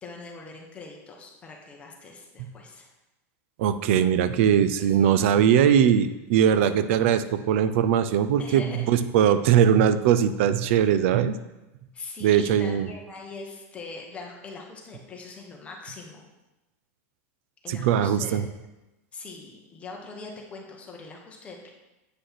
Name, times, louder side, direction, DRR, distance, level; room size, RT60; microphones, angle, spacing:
voice 1, 0.0-2.9 4.8-5.7 8.4-8.9 9.2-9.4 11.9-16.2 17.6-18.4 19.1-21.7, left 3 dB, 15° left, 0 dB, 1.2 m, -42 dB
voice 2, 3.6-11.3 12.2-12.9 17.7-18.4, right 9 dB, 55° right, 13 dB, 0.6 m, -21 dB
8.3 x 5.3 x 5.8 m, 1.0 s
supercardioid pair, 165°, 8 cm